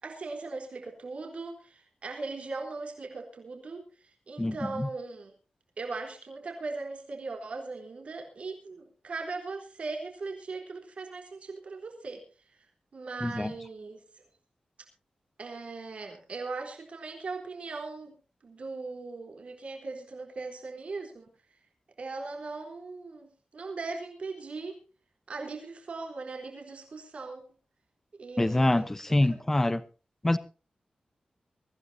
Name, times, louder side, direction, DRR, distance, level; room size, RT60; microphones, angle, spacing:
voice 1, 0.0-5.3 5.8-12.2 12.9-14.0 15.4-18.1 18.4-21.3 22.0-24.8 25.3-27.4 28.2-28.9, right 3 dB, 55° right, 3.8 m, -39 dB
voice 2, 4.4-4.9 13.2-13.5 28.4-29.8 30.2-30.4, left 1 dB, 15° left, 0.9 m, -25 dB
23.5 x 15.0 x 2.8 m
wide cardioid pair, 160°, 3 cm